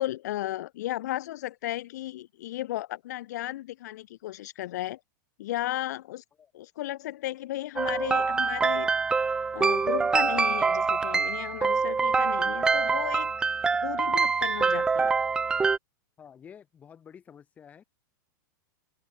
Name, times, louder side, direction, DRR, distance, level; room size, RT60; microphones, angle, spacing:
voice 1, 0.0-5.0 5.4-6.2 6.5-8.9 9.5-13.3 13.8-15.1, left 15 dB, 55° left, 1.8 m, -34 dB
sound 1, 7.8-15.8, right 4 dB, 5° right, 0.7 m, -25 dB
voice 2, 16.2-17.8, left 8 dB, 15° left, 4.8 m, -50 dB
supercardioid pair, 175°, 11 cm